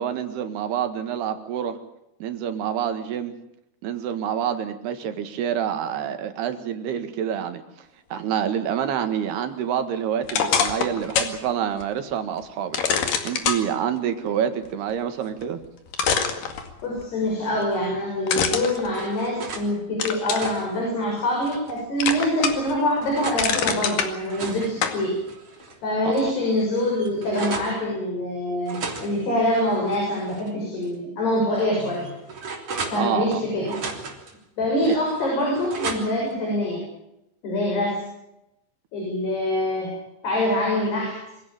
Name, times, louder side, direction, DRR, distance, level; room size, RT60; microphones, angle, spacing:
voice 1, 0.0-1.8 2.2-3.3 3.8-7.6 8.1-12.8 13.2-15.6 26.1-26.3 33.0-33.4 34.9-35.0, right 9 dB, 80° right, 8 dB, 3.8 m, -27 dB
sound 1, 10.3-11.4 11.8-11.9 12.7-13.6 15.4-15.5 15.9-17.0 18.3-19.6 20.0-20.5 21.0-21.7 22.0-22.7 23.1-24.1 24.8-25.0, left 7 dB, 65° left, 3.6 m, -24 dB
voice 2, 16.8-25.1 25.8-32.1 32.9-33.7 34.6-36.8 37.4-38.0 38.9-39.9 40.2-41.2, left 1 dB, 85° left, -2 dB, 9.1 m, -25 dB
sound 2, 18.5-19.7 20.1-21.8 22.3-23.5 24.0-25.8 26.1-26.2 26.5-27.8 28.6-30.5 30.8-30.9 31.6-33.4 33.7-34.3 34.8-36.3, right 4 dB, 40° right, 4.1 m, -36 dB
25.0 x 16.5 x 9.0 m, 0.83 s
omnidirectional pair, 4.5 m